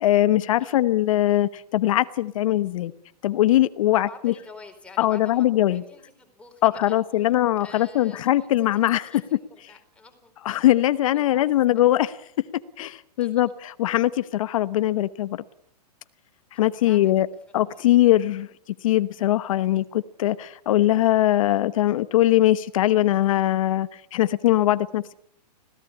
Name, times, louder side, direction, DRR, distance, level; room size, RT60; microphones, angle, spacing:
voice 1, 0.0-2.9 3.2-4.3 5.0-5.8 6.6-9.2 10.4-12.2 12.8-15.4 16.5-17.3 17.5-18.5 18.8-25.1, left 14 dB, 55° left, 13 dB, 1.0 m, -21 dB
voice 2, 3.9-7.0 7.6-10.3 11.1-11.5 11.7-11.8 12.9-13.4 16.8-17.1 17.5-18.1, left 3 dB, 5° left, 3 dB, 4.5 m, -48 dB
26.0 x 17.5 x 9.9 m, 0.72 s
hypercardioid pair, 150°, 21 cm